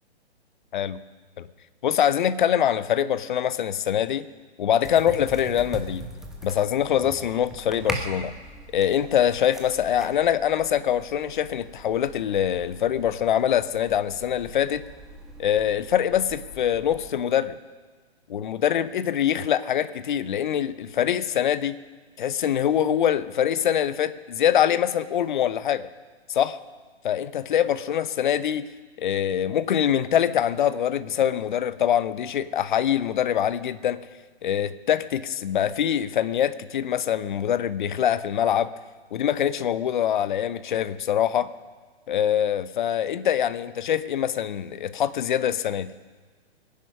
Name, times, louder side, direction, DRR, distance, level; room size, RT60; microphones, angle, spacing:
voice 1, 1.8-4.3 4.6-6.0 6.4-8.3 8.7-14.8 15.4-17.6 18.3-21.8 22.2-25.9 26.3-26.6 27.0-28.7 29.0-34.0 34.4-38.7 39.1-41.5 42.1-45.9, left 10 dB, 45° left, 16 dB, 0.8 m, -24 dB
sound 1, 4.8-17.1, right 1 dB, ahead, 1.1 m, -40 dB
23.0 x 10.5 x 5.5 m, 1.4 s
figure-of-eight pair, 130°, 33 cm